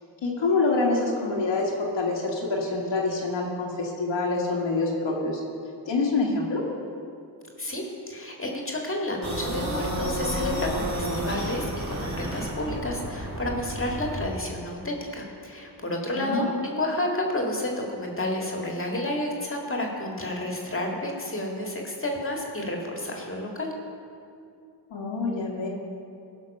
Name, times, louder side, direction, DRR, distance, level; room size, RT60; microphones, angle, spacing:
voice 1, 0.2-5.4 5.9-6.6 16.2-16.6 24.9-25.7, left 3 dB, 80° left, -4 dB, 1.8 m, -26 dB
voice 2, 7.6-23.7, left 1 dB, 30° left, 0 dB, 1.9 m, -30 dB
sound 1, 9.2-14.3, right 1 dB, 40° right, 2.0 m, -31 dB
15.0 x 5.9 x 5.4 m, 2.5 s
cardioid pair, 60°, 44 cm